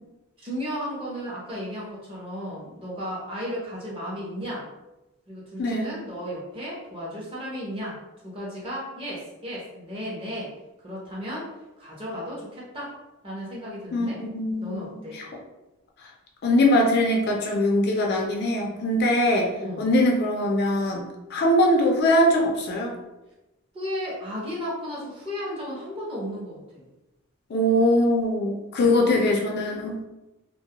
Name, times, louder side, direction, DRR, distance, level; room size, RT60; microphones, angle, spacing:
voice 1, 0.4-4.7 5.3-8.0 8.2-10.5 10.8-11.5 11.8-13.0 13.2-14.2 14.6-15.2 19.6-19.8 23.7-26.8 28.8-29.3, equal, 25° right, -5 dB, 0.7 m, -34 dB
voice 2, 5.6-5.9 13.9-15.0 16.4-19.5 19.8-21.0 21.3-22.9 27.5-30.0, left 1 dB, 50° left, 0 dB, 0.4 m, -22 dB
2.2 x 2.0 x 2.7 m, 1.0 s
head